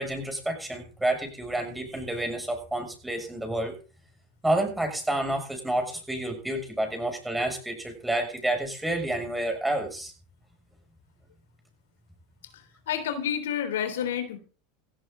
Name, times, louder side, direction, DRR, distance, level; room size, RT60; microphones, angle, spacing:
voice 1, 0.0-3.7 4.4-10.1, right 1 dB, 5° right, 4 dB, 6.7 m, -29 dB
voice 2, 12.5-14.4, left 9 dB, 85° left, 9 dB, 3.3 m, -30 dB
17.0 x 15.0 x 3.8 m, 0.36 s
hypercardioid pair, 100°, 0 cm